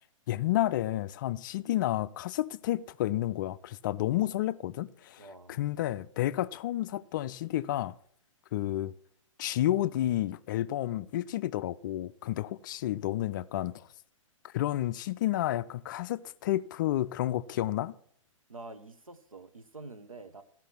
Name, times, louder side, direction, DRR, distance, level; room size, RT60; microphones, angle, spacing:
voice 1, 0.3-8.0 8.5-8.9 9.4-13.9 14.4-18.0, left 14 dB, 35° left, 0.3 m, -31 dB
voice 2, 5.2-5.6 12.4-12.5 18.5-20.4, right 3 dB, 85° right, 1.0 m, -47 dB
14.0 x 5.9 x 5.8 m
figure-of-eight pair, 115°, 17 cm